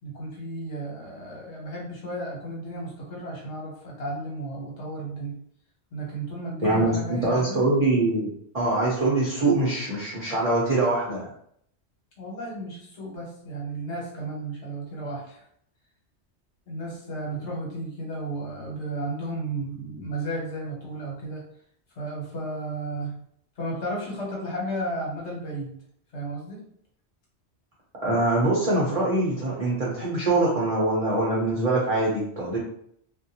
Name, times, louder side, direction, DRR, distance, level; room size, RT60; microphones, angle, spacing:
voice 1, 0.0-5.4 5.9-7.6 12.2-15.5 16.7-21.4 21.9-23.1 23.6-25.7 26.1-26.6, right 1 dB, 80° left, -3 dB, 1.3 m, -33 dB
voice 2, 6.6-8.3 8.5-11.3 28.0-32.6, right 2 dB, 40° right, -6 dB, 0.7 m, -23 dB
2.5 x 2.2 x 2.7 m, 0.66 s
omnidirectional pair, 1.1 m